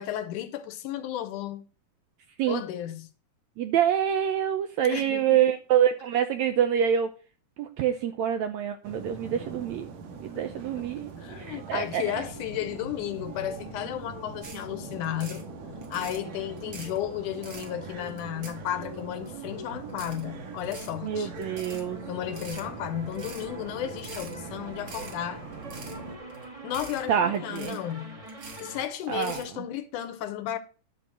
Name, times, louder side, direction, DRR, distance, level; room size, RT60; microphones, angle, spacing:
voice 1, 0.0-1.7 2.5-3.1 4.9-5.4 10.6-15.5 15.9-21.3 22.1-25.4 26.6-28.2 28.6-30.6, left 11 dB, 75° left, 2.1 m, -34 dB
voice 2, 3.6-7.1 7.6-9.9 10.2-12.2 21.0-22.0 27.1-27.8 29.1-29.4, right 9 dB, 80° right, 1.6 m, -26 dB
sound 1, 8.8-26.2, right 5 dB, 60° right, 2.2 m, -43 dB
sound 2, 12.0-28.9, right 1 dB, 25° right, 0.8 m, -44 dB
sound 3, 14.4-14.6 14.9-15.4 15.8-16.2 16.6-17.0 17.3-17.7 18.1-18.9 19.3-19.4 19.9-20.2 20.6-20.9 21.4-21.8 22.2-22.7 23.1-23.5 23.9-24.3 24.7-25.1 25.5-26.0 26.3-26.4 26.7-27.0 27.3-27.9 28.3-28.7 29.0-29.5, right 4 dB, 45° right, 2.9 m, -44 dB
11.5 x 3.9 x 7.6 m
omnidirectional pair, 3.9 m